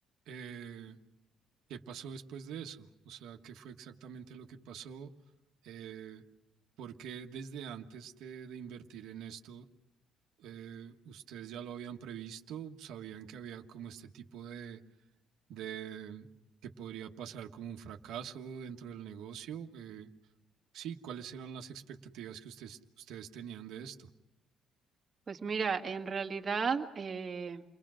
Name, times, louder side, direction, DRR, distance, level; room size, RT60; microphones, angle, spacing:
voice 1, 0.3-1.0 1.7-5.1 5.6-6.2 6.8-9.7 10.4-14.8 15.5-16.3 16.6-20.1 20.7-24.1, right 8 dB, 80° right, 3 dB, 1.4 m, -44 dB
voice 2, 25.3-27.6, right 5 dB, 30° right, 3 dB, 1.9 m, -34 dB
29.0 x 21.5 x 6.3 m, 0.99 s
cardioid pair, 135°, 0 cm